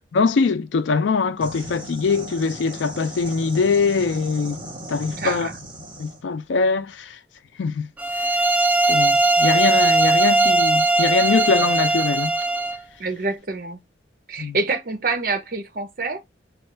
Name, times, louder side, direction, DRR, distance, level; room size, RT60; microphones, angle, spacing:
voice 1, 0.1-4.6 4.9-5.5 6.0-7.2 7.6-7.9 8.9-12.3 14.4-14.6, left 4 dB, 90° left, 0.4 m, -22 dB
sound 1, 1.4-6.2, right 1 dB, 25° right, 1.1 m, -37 dB
voice 2, 5.2-5.6 13.0-13.8 14.3-16.2, right 3 dB, 50° right, 0.8 m, -26 dB
sound 2, 8.0-12.8, right 2 dB, 10° right, 0.4 m, -19 dB
4.3 x 2.3 x 3.2 m
head